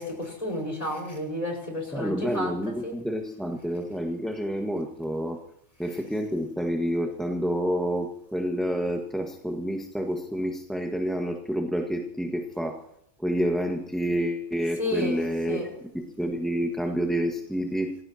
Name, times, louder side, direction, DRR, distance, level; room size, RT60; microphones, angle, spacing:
voice 1, 0.0-3.0 14.8-15.7, left 1 dB, 25° left, 1 dB, 5.5 m, -32 dB
voice 2, 1.9-5.4 5.8-12.8 13.2-15.6 15.9-18.0, equal, ahead, 2 dB, 1.5 m, -28 dB
29.0 x 17.0 x 2.9 m, 0.74 s
omnidirectional pair, 1.3 m